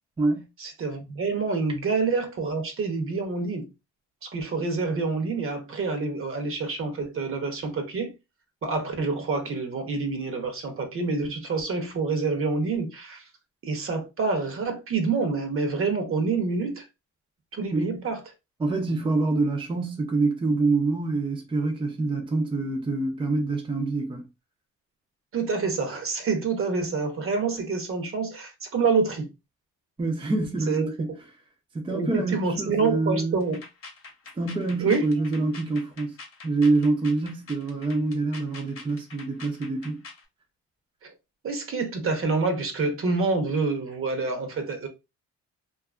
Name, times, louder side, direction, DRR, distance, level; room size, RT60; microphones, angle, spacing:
voice 1, 0.6-3.7 4.3-8.1 8.6-13.2 13.6-16.9 17.5-18.2 25.3-29.3 30.7-30.9 31.9-33.6 34.8-35.0 41.0-41.1 41.4-44.9, right 4 dB, 45° right, 0.8 m, -27 dB
voice 2, 17.7-18.0 18.6-24.3 30.0-31.1 31.7-33.4 34.4-36.1 36.4-40.0, right 3 dB, 15° right, 0.6 m, -26 dB
sound 1, 33.4-40.3, left 4 dB, 50° left, 0.9 m, -45 dB
2.6 x 2.4 x 2.4 m
cardioid pair, 90°, 30 cm